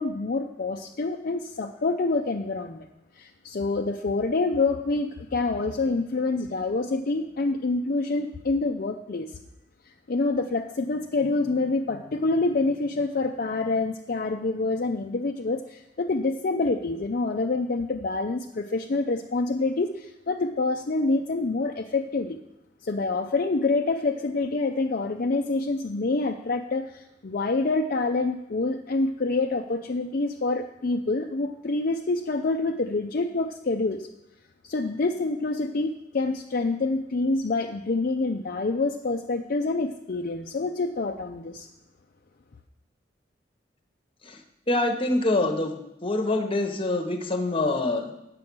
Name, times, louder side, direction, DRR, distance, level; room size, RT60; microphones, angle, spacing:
voice 1, 0.0-2.9 3.2-9.3 10.1-22.4 22.8-34.1 34.6-41.7, left 3 dB, 50° left, 3 dB, 0.5 m, -27 dB
voice 2, 44.7-45.8 46.0-48.1, left 2 dB, 30° left, 6 dB, 1.0 m, -25 dB
8.6 x 7.6 x 6.1 m, 0.85 s
head